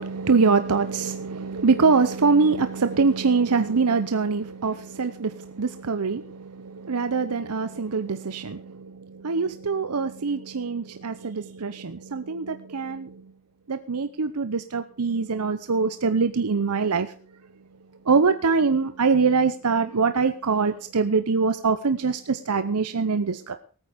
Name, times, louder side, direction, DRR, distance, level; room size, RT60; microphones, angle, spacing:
voice 1, 0.0-13.2 13.7-17.1 18.1-23.6, right 4 dB, 90° right, 10 dB, 0.8 m, -24 dB
19.0 x 9.0 x 5.1 m, 0.40 s
head